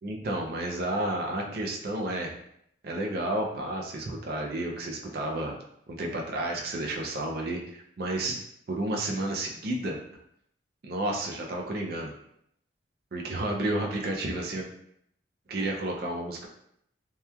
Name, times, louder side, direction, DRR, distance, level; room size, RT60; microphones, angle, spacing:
voice 1, 0.0-2.3 2.8-5.5 5.9-8.4 8.7-10.0 10.8-12.1 13.1-14.7 15.5-16.5, right 1 dB, 55° right, 0 dB, 0.4 m, -31 dB
2.9 x 2.1 x 2.3 m, 0.73 s
head